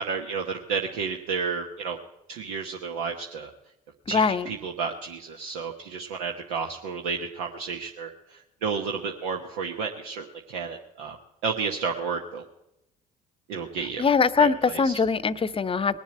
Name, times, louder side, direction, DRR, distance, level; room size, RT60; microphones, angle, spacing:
voice 1, 0.0-2.0 2.3-3.5 4.1-11.2 11.4-12.4 13.5-14.1 14.4-14.9, right 5 dB, 75° right, 1 dB, 1.1 m, -31 dB
voice 2, 4.1-4.5 13.8-16.0, left 5 dB, 25° left, 16 dB, 0.8 m, -23 dB
20.0 x 7.3 x 8.6 m, 0.88 s
hypercardioid pair, 55°, 20 cm